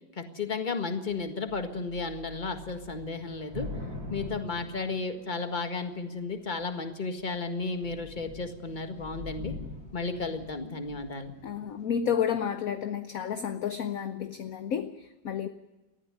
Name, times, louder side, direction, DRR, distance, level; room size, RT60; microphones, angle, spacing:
voice 1, 0.1-3.7 4.1-9.5 9.9-11.3, left 4 dB, 25° left, 7 dB, 1.7 m, -33 dB
Thunder / Rain, 1.1-1.2 1.5-5.6 6.3-6.8 7.2-7.3 7.6-11.4, left 2 dB, 30° right, 5.5 m, -43 dB
voice 2, 11.4-15.5, left 8 dB, 55° left, 10 dB, 1.1 m, -31 dB
19.0 x 14.0 x 9.7 m, 1.1 s
omnidirectional pair, 2.1 m